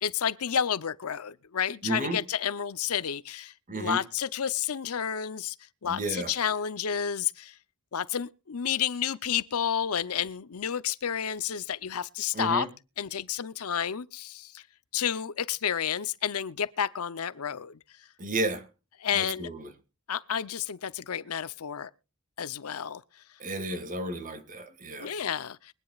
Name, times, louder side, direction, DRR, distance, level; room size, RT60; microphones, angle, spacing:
voice 1, 0.0-5.6 5.8-7.6 7.9-12.7 13.0-14.6 14.9-17.8 19.0-19.5 20.1-21.9 22.4-23.0 25.0-25.7, left 8 dB, 80° left, 0.7 m, -30 dB
voice 2, 1.8-2.2 3.7-4.0 5.8-6.3 12.3-12.7 18.2-18.6 19.1-19.7 23.4-25.1, right 2 dB, 40° right, 2.2 m, -32 dB
23.5 x 9.8 x 2.4 m
head